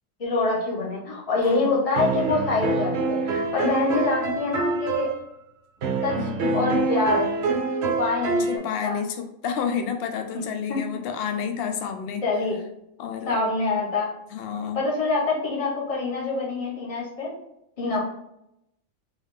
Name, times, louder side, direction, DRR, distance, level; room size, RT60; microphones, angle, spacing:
voice 1, 0.2-5.1 6.0-7.3 8.0-8.4 8.8-9.0 10.7-10.8 12.2-12.6 13.2-14.1 14.7-17.3 17.8-18.0, left 3 dB, 25° left, -5 dB, 1.2 m, -25 dB
voice 2, 1.4-1.8 6.2-6.9 8.5-12.2 13.0-13.4 14.3-14.8 17.9-18.0, left 7 dB, 65° left, 6 dB, 0.6 m, -30 dB
sound 1, 1.9-5.2 5.8-8.6, right 4 dB, 55° right, 0.8 m, -26 dB
3.6 x 3.5 x 3.6 m, 0.82 s
omnidirectional pair, 1.6 m